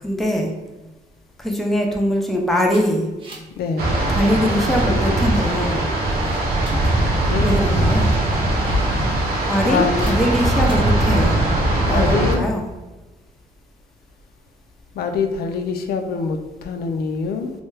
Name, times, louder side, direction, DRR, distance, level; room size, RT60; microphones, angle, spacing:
voice 1, 0.0-0.5 1.4-3.1 4.1-5.9 7.4-8.1 9.5-11.4 11.9-12.7, equal, ahead, 0 dB, 0.4 m, -21 dB
sound 1, 2.7-3.6 3.8-4.1 4.4-4.9 5.4-5.8 6.2-6.9 8.5-8.9 9.9-10.2 10.7-11.0, left 2 dB, 30° right, 0.7 m, -33 dB
voice 2, 3.6-3.9 7.3-7.5 9.6-9.9 11.8-12.5 14.9-17.5, left 5 dB, 85° left, 6 dB, 0.4 m, -24 dB
sound 2, 3.8-12.4, right 1 dB, 75° right, 0.6 m, -20 dB
3.2 x 2.2 x 3.2 m, 1.1 s
wide cardioid pair, 155°, 16 cm